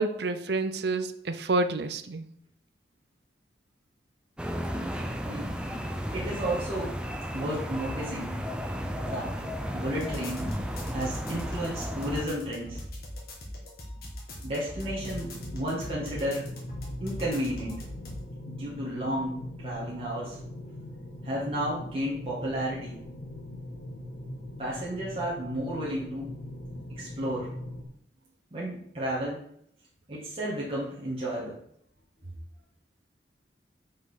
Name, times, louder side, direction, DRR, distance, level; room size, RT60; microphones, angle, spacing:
voice 1, 0.0-2.3, right 3 dB, 65° right, 10 dB, 0.6 m, -28 dB
sound 1, 4.4-12.3, equal, 5° right, 0.6 m, -34 dB
voice 2, 5.2-5.6 6.1-7.0 7.3-8.4 9.1-10.5 10.9-12.8 14.4-16.5 17.0-17.8 18.5-20.4 21.2-23.0 24.6-26.3 26.9-27.5 28.5-29.5 30.1-31.6, right 1 dB, 30° right, -7 dB, 1.9 m, -32 dB
sound 2, 9.9-18.2, left 1 dB, 55° left, 1.9 m, -40 dB
sound 3, 14.9-27.8, left 1 dB, 85° left, 1.7 m, -41 dB
5.6 x 5.3 x 5.7 m, 0.68 s
head